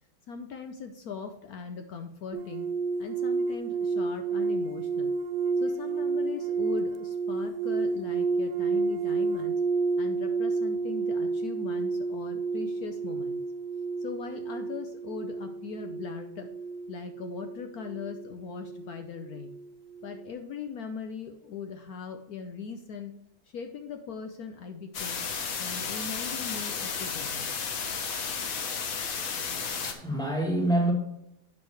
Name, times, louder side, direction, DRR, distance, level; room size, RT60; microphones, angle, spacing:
voice 1, 0.3-2.7 3.0-5.1 5.6-9.6 10.0-13.4 14.0-16.5 16.9-19.6 20.0-23.1 23.5-25.2 25.6-27.5, left 6 dB, 80° left, 0.8 m, -40 dB
sound 1, 2.3-19.7 19.9-20.3, right 4 dB, 75° right, 1.2 m, -30 dB
sound 2, 24.9-29.9, left 6 dB, 55° left, 1.0 m, -33 dB
voice 2, 29.6-30.9, right 1 dB, ahead, 1.3 m, -27 dB
8.5 x 6.3 x 3.3 m
omnidirectional pair, 2.4 m